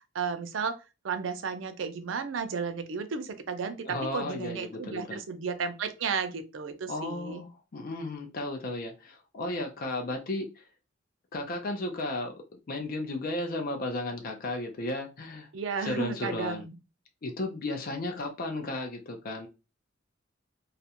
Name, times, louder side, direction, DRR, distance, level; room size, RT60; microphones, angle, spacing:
voice 1, 0.1-0.8 1.0-7.4 15.5-16.8, right 5 dB, 70° right, 0.4 m, -33 dB
voice 2, 3.8-5.2 6.9-10.6 11.3-12.3 12.7-15.5 15.8-16.6 17.2-19.5, left 2 dB, 45° left, 0.5 m, -34 dB
2.4 x 2.1 x 2.8 m
head